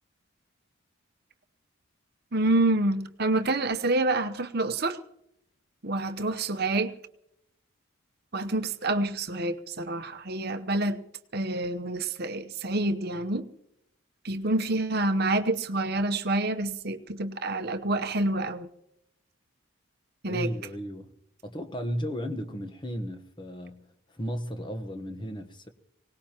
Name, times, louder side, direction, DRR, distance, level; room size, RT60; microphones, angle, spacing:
voice 1, 2.3-5.0 5.8-6.9 8.3-11.0 11.3-13.5 14.2-18.7 20.2-20.5, right 2 dB, 45° right, 0.9 m, -27 dB
voice 2, 20.3-21.1 21.4-23.8 24.1-25.7, equal, 20° left, 1.1 m, -34 dB
24.5 x 18.5 x 3.0 m
head